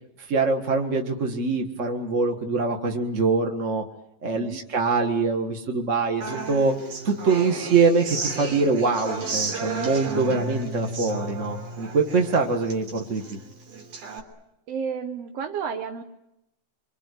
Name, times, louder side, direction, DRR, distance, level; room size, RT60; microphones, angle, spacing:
voice 1, 0.3-3.8 4.2-6.7 7.0-13.4, right 4 dB, 35° right, 3 dB, 1.3 m, -24 dB
voice 2, 4.3-4.6 10.2-10.5 14.7-16.0, right 6 dB, 60° right, 5 dB, 2.1 m, -32 dB
Human voice / Acoustic guitar, 6.2-14.2, right 4 dB, 80° right, 4.8 m, -33 dB
27.5 x 24.5 x 8.3 m, 0.86 s
omnidirectional pair, 3.6 m